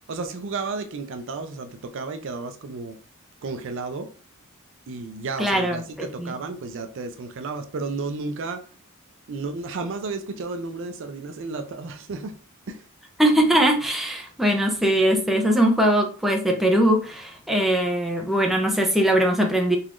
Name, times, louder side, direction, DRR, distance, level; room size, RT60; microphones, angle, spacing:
voice 1, 0.1-3.0 3.4-4.1 4.9-8.6 9.3-12.3 12.7-12.9, right 3 dB, 60° right, 0.4 m, -32 dB
voice 2, 5.4-5.8 6.2-6.3 13.2-19.8, right 1 dB, ahead, 0.5 m, -21 dB
4.0 x 2.9 x 2.4 m
head